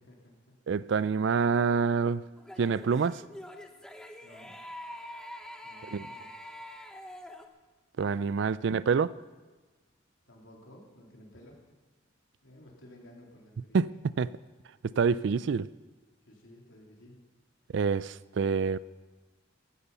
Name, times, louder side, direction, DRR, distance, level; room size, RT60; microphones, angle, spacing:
voice 1, 0.0-0.6 4.2-4.6 5.6-6.6 10.3-11.6 12.4-14.0 16.3-17.3, left 1 dB, 70° left, 3.5 m, -54 dB
voice 2, 0.7-2.2 2.6-3.2 5.9-6.0 8.0-9.1 13.7-13.9 14.2-14.3 14.8-15.7 17.7-18.8, right 5 dB, 60° right, 0.3 m, -26 dB
sound 1, 2.4-7.5, left 1 dB, 5° left, 0.8 m, -45 dB
15.0 x 13.5 x 5.6 m
head